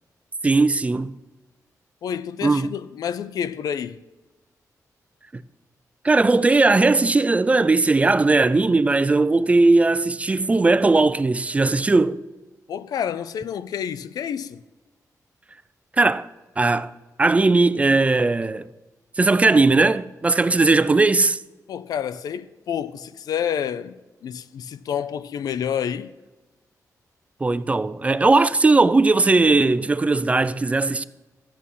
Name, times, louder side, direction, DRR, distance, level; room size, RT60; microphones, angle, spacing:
voice 1, 0.4-1.1 2.4-2.7 5.3-5.4 6.0-12.2 16.0-16.3 16.6-16.9 17.2-18.7 19.2-21.4 27.4-31.0, right 3 dB, 20° right, 0.4 m, -18 dB
voice 2, 2.0-4.0 12.7-14.6 21.7-23.9 24.2-26.1, left 8 dB, 85° left, 0.5 m, -29 dB
12.5 x 8.7 x 5.4 m
wide cardioid pair, 115°, 6 cm